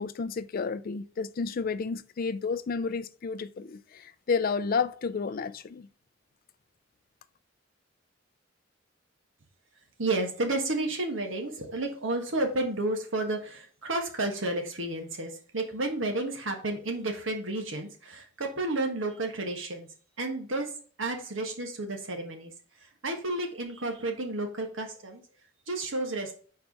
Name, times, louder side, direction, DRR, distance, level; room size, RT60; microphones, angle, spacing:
voice 1, 0.0-5.9, left 5 dB, 50° left, 0.4 m, -31 dB
voice 2, 10.0-19.9 20.2-20.7 21.0-22.5 23.0-25.2 25.7-26.3, right 2 dB, 85° right, 1.4 m, -31 dB
4.6 x 4.6 x 5.2 m
head